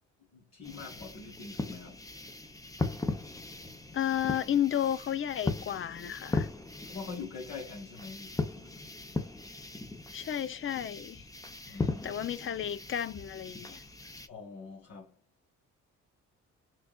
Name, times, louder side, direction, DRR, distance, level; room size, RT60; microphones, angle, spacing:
voice 1, 0.3-2.1 6.8-8.9 11.7-12.2 14.2-15.2, left 4 dB, 60° left, 1.5 m, -44 dB
sound 1, 0.6-14.3, left 3 dB, 10° left, 0.8 m, -38 dB
voice 2, 3.9-6.5 10.1-11.2 11.7-11.8 12.0-13.8, left 10 dB, 45° left, 0.6 m, -32 dB
6.2 x 2.5 x 2.3 m
cardioid pair, 90°, 30 cm